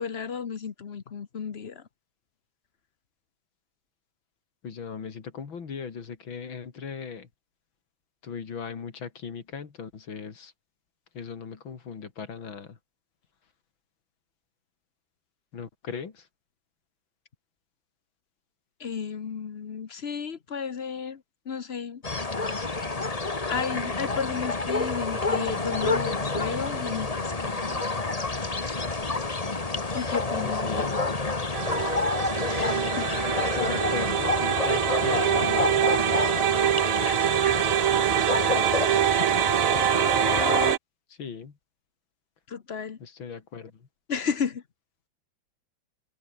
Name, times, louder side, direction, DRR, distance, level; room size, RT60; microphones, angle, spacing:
voice 1, 0.0-1.9 18.8-22.0 22.8-23.2 23.5-27.8 29.9-30.9 32.5-33.1 42.5-43.0 44.1-44.6, left 6 dB, 40° left, 1.0 m, -33 dB
voice 2, 4.6-7.3 8.2-10.5 11.1-12.8 15.5-16.3 30.4-30.9 33.4-36.0 41.1-41.6 43.0-43.9, left 6 dB, 80° left, 3.3 m, -38 dB
sound 1, 22.0-40.7, left 3 dB, 20° left, 1.5 m, -28 dB
sound 2, 31.5-40.8, right 12 dB, 70° right, 0.8 m, -25 dB
omnidirectional pair, 2.1 m